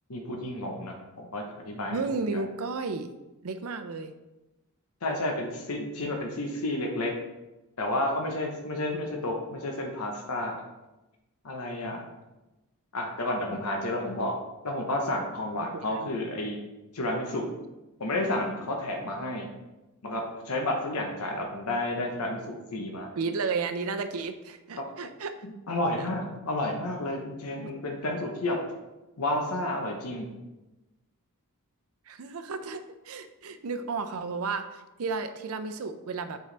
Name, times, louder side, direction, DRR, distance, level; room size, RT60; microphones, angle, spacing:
voice 1, 0.1-2.0 2.3-2.4 5.0-7.1 7.8-10.6 11.4-12.1 12.9-14.4 14.6-16.6 16.9-17.5 18.0-19.5 20.0-23.1 24.8-24.9 25.4-28.6 29.2-30.3, left 1 dB, 80° left, 1 dB, 0.9 m, -31 dB
voice 2, 1.9-3.1 3.4-4.1 15.7-16.1 23.2-25.5 26.0-26.1 27.5-28.0 32.1-36.4, right 4 dB, 70° right, 9 dB, 0.5 m, -33 dB
7.5 x 4.6 x 3.3 m, 1.0 s
head